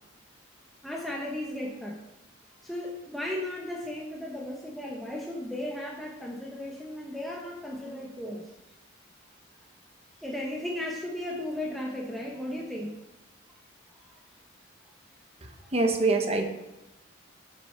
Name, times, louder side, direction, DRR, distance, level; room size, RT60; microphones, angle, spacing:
voice 1, 0.8-2.0 2.6-8.4 10.2-12.9, left 1 dB, ahead, -3 dB, 0.9 m, -35 dB
voice 2, 15.7-16.4, right 3 dB, 30° right, 4 dB, 0.9 m, -24 dB
7.6 x 6.4 x 5.7 m, 0.97 s
head